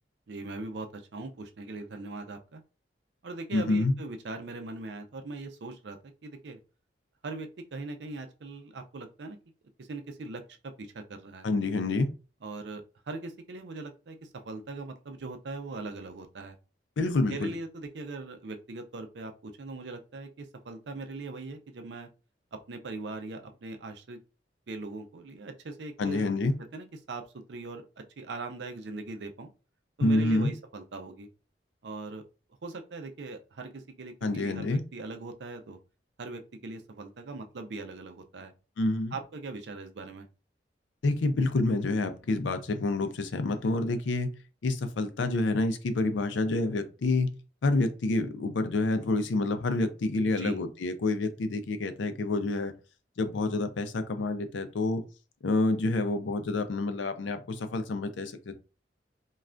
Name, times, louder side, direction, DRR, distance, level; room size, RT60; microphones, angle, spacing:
voice 1, 0.3-2.6 3.2-6.6 7.2-9.4 9.8-11.5 12.4-16.6 17.3-22.1 22.5-24.2 24.7-26.3 26.7-27.2 27.5-29.5 30.0-31.3 31.8-32.2 32.6-35.8 36.2-38.5 39.1-40.3 50.4-50.6, right 3 dB, 70° right, 0.5 m, -40 dB
voice 2, 3.5-3.9 11.4-12.1 17.0-17.5 26.0-26.5 30.0-30.5 34.2-34.8 38.8-39.2 41.0-44.3 44.6-47.3 47.6-52.7 53.2-55.0 55.4-58.5, left 2 dB, 85° left, 0.5 m, -28 dB
2.5 x 2.3 x 3.2 m
head